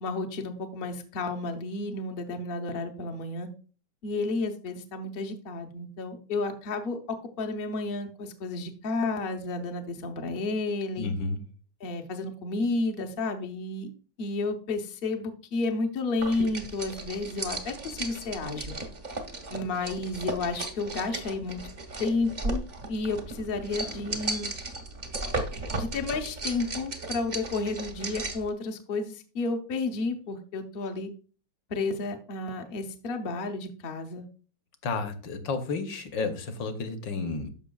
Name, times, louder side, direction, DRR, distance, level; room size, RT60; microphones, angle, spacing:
voice 1, 0.0-3.5 4.0-11.1 11.8-13.9 14.2-18.8 19.5-21.6 22.0-22.6 22.9-24.5 25.7-31.1 31.7-34.2, left 3 dB, 80° left, 4 dB, 0.5 m, -31 dB
voice 2, 11.0-11.4 34.8-37.5, left 4 dB, 65° left, 8 dB, 1.4 m, -31 dB
sound 1, 16.2-28.5, right 2 dB, 55° right, 0.5 m, -36 dB
12.5 x 5.3 x 2.3 m, 0.38 s
omnidirectional pair, 2.4 m